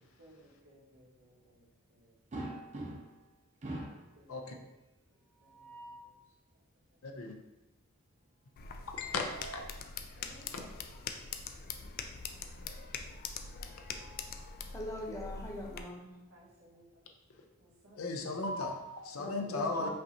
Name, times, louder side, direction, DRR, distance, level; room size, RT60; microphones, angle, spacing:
voice 1, 0.2-2.2 3.4-4.4 5.1-6.6 6.9-7.5 10.2-11.2 11.4-11.7 16.3-17.0 17.6-18.5, right 1 dB, 90° right, -7 dB, 1.5 m, -62 dB
sound 1, 2.3-3.2 3.6-4.1 5.3-6.1 8.7-9.8 11.2-11.4 11.7-11.8 13.4-14.6, right 1 dB, 35° right, 0.6 m, -45 dB
voice 2, 7.0-7.4 8.9-9.9 18.0-19.9, left 3 dB, 85° left, 3 dB, 0.6 m, -36 dB
sound 2, 8.6-15.8, left 5 dB, 45° left, 0.3 m, -43 dB
voice 3, 14.7-16.1 19.2-19.9, left 1 dB, 15° left, -2 dB, 0.7 m, -42 dB
5.3 x 2.9 x 2.7 m, 1.0 s
head